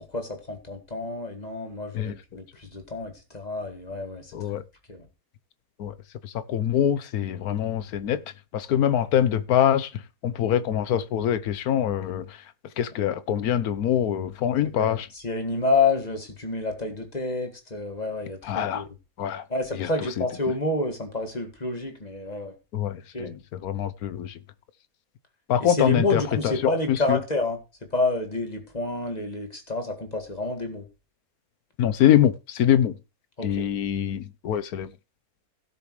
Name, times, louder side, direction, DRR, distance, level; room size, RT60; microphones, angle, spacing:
voice 1, 0.0-4.3 4.9-5.1 14.7-18.8 19.5-22.6 23.1-23.3 25.6-27.6 27.9-30.9 33.4-33.7, left 3 dB, 25° left, 2.1 m, -29 dB
voice 2, 4.3-4.6 5.8-5.9 6.2-8.2 8.5-15.1 18.4-18.9 19.2-19.4 19.7-19.9 20.2-20.3 22.7-24.4 25.5-27.2 31.8-33.0 33.4-34.9, left 10 dB, 80° left, 1.3 m, -24 dB
16.5 x 6.6 x 3.2 m
omnidirectional pair, 1.6 m